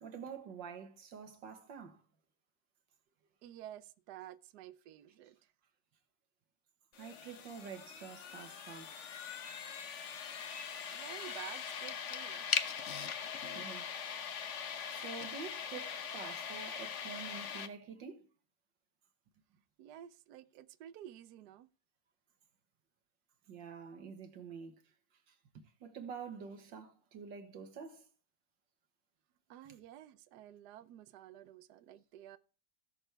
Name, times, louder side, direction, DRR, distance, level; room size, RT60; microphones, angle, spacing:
voice 1, 0.0-2.0 7.0-8.9 13.4-13.9 15.0-18.3 23.5-24.8 25.3-28.1, right 6 dB, 90° right, 2.1 m, -48 dB
voice 2, 3.4-5.5 10.9-12.5 19.8-21.7 29.5-32.4, right 11 dB, 70° right, 1.1 m, -51 dB
sound 1, 6.9-17.7, left 7 dB, 50° left, 1.0 m, -41 dB
17.5 x 6.5 x 3.4 m
omnidirectional pair, 1.9 m